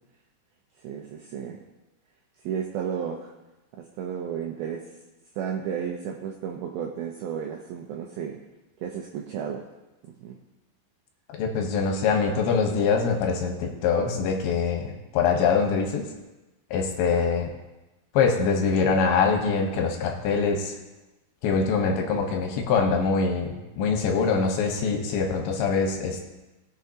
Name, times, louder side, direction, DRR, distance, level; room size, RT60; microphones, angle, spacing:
voice 1, 0.8-1.6 2.4-3.3 3.8-4.8 5.4-8.4 8.8-9.6 10.0-10.4 22.0-22.2, right 8 dB, 85° right, 1 dB, 2.2 m, -33 dB
voice 2, 11.3-16.1 16.7-17.5 18.1-20.7 21.4-26.3, left 5 dB, 75° left, 2 dB, 3.3 m, -24 dB
19.0 x 6.9 x 2.9 m, 1.0 s
omnidirectional pair, 5.3 m